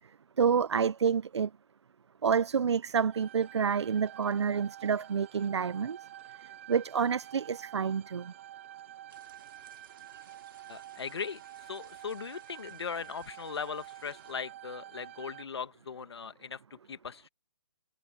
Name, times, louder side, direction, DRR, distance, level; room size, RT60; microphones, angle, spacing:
voice 1, 0.4-1.5 2.2-6.0 6.7-8.3, right 6 dB, 80° right, 0.5 m, -28 dB
sound 1, 3.1-15.4, right 13 dB, 30° right, 0.8 m, -49 dB
sound 2, 9.1-14.3, right 7 dB, 55° right, 5.0 m, -60 dB
voice 2, 10.7-11.4 11.7-17.3, left 6 dB, 70° left, 1.8 m, -39 dB
hypercardioid pair, 165°, 14 cm